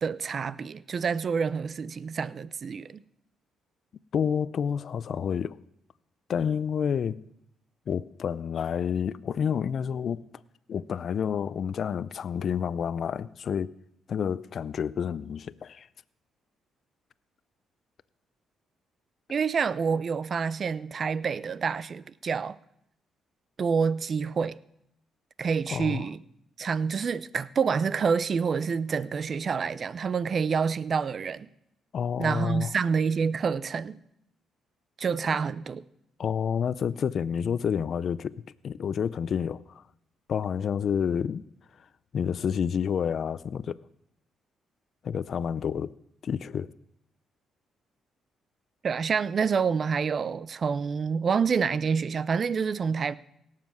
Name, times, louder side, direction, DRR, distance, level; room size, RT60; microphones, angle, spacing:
voice 1, 0.0-3.0 19.3-22.6 23.6-24.6 25.4-26.2 26.6-31.5 32.2-34.0 35.0-35.8 48.8-53.1, right 6 dB, 45° right, 0.5 m, -27 dB
voice 2, 4.1-5.6 6.3-7.2 7.9-10.3 10.7-13.7 14.1-15.9 25.7-26.1 31.9-32.7 35.3-35.4 36.2-39.8 40.3-41.4 42.1-43.8 45.0-45.9 46.2-46.7, left 7 dB, 55° left, 0.4 m, -29 dB
17.5 x 7.4 x 6.1 m
cardioid pair, 90°, 0 cm